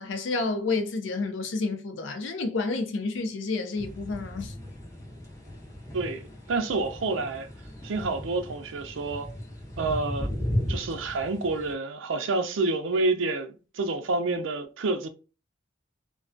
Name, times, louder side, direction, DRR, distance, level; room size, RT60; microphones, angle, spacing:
voice 1, 0.0-4.5, left 3 dB, 70° left, 0.4 m, -30 dB
sound 1, 3.8-11.7, equal, 15° left, 0.6 m, -36 dB
voice 2, 5.9-7.5 7.8-9.3 9.8-10.3 10.7-15.1, right 3 dB, 85° right, 0.5 m, -28 dB
2.3 x 2.2 x 2.4 m
head